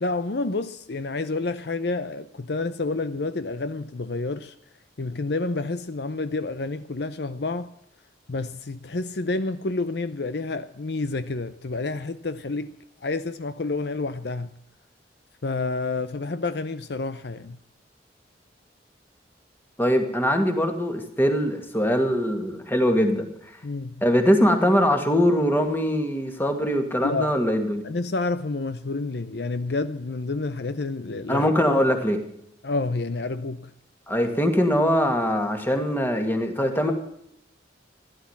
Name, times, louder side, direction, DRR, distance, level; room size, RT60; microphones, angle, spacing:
voice 1, 0.0-4.5 5.0-7.7 8.3-12.7 13.0-14.5 15.4-17.6 23.6-24.0 27.0-27.3 27.8-31.5 32.6-33.7, left 3 dB, 65° left, 0.7 m, -29 dB
voice 2, 19.8-23.3 24.0-27.8 31.3-32.2 34.1-36.9, equal, 10° left, 2.2 m, -22 dB
15.5 x 11.5 x 7.2 m
head